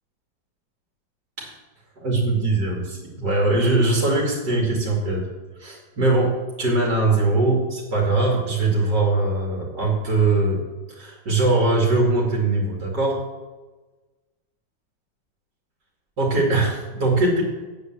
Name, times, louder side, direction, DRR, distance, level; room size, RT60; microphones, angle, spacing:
voice 1, 2.0-5.2 5.6-10.6 10.9-13.2 16.2-17.4, right 2 dB, 60° right, -2 dB, 3.1 m, -21 dB
8.7 x 8.3 x 7.8 m, 1.2 s
omnidirectional pair, 2.0 m